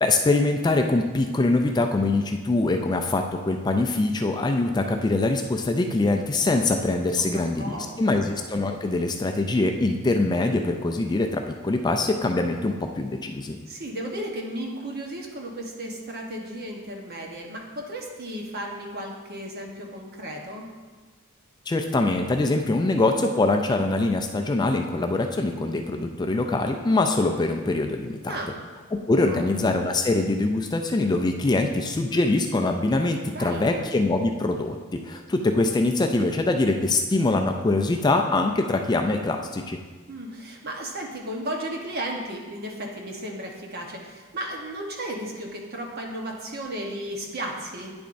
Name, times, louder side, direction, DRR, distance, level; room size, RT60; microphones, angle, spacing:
voice 1, 0.0-13.6 21.7-28.4 28.9-39.8, left 2 dB, 20° left, 4 dB, 0.3 m, -23 dB
voice 2, 7.2-8.2 13.7-20.7 28.3-28.5 29.2-29.5 33.3-33.7 40.1-47.9, right 1 dB, 45° right, 0 dB, 1.1 m, -34 dB
9.4 x 6.9 x 2.6 m, 1.4 s
head